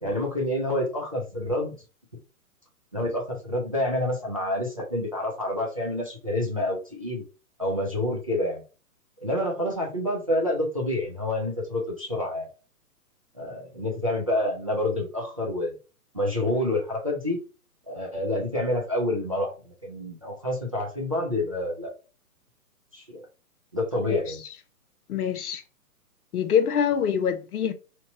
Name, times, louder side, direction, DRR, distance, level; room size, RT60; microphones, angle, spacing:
voice 1, 0.0-1.8 2.9-7.2 7.6-8.6 9.2-12.5 13.3-15.7 16.1-17.4 17.9-21.9 22.9-23.2 23.7-24.4, left 1 dB, 25° right, 0.4 m, -28 dB
voice 2, 25.1-25.6 26.3-27.7, left 8 dB, 75° left, 0.8 m, -25 dB
2.9 x 2.1 x 4.0 m
hypercardioid pair, 155°, 45 cm